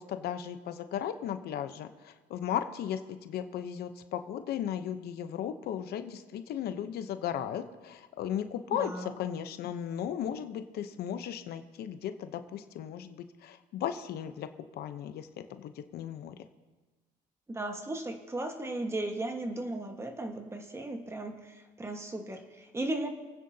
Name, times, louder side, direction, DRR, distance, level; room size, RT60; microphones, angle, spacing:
voice 1, 0.0-14.5 14.7-15.3 15.6-16.3, left 9 dB, 70° left, 9 dB, 0.8 m, -36 dB
voice 2, 8.7-9.1 17.5-23.1, right 2 dB, 15° right, 4 dB, 1.5 m, -36 dB
28.0 x 9.4 x 2.8 m, 1.2 s
cardioid pair, 110°, 17 cm